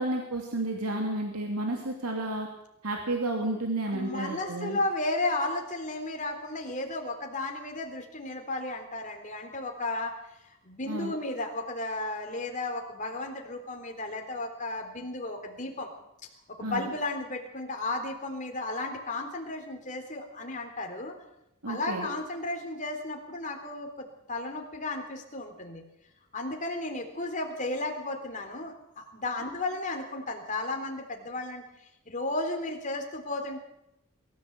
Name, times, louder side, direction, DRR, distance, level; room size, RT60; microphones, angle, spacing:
voice 1, 0.0-2.5 2.8-4.8 10.9-11.1 16.6-16.9 21.6-22.1, right 2 dB, 90° right, 2 dB, 2.8 m, -31 dB
voice 2, 3.9-10.2 10.6-15.9 16.5-21.2 21.7-25.8 26.3-31.6 32.1-33.6, left 2 dB, 35° left, 3 dB, 3.6 m, -34 dB
23.0 x 14.5 x 8.1 m, 0.83 s
head